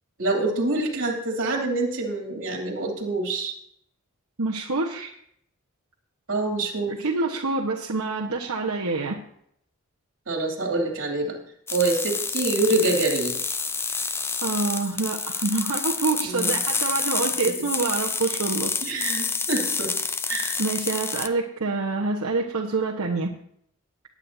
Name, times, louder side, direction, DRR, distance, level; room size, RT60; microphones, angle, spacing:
voice 1, 0.2-3.5 6.3-6.9 10.3-11.4 11.7-13.4 16.2-16.6 18.8-19.9 20.3-20.6, right 2 dB, 65° right, 1 dB, 2.9 m, -26 dB
voice 2, 4.4-5.1 6.9-9.2 13.9-14.1 14.4-18.7 20.6-23.3, right 3 dB, 85° right, -3 dB, 1.3 m, -26 dB
sound 1, 11.7-21.3, left 4 dB, 10° left, 0.4 m, -28 dB
20.0 x 8.9 x 2.8 m, 0.68 s
head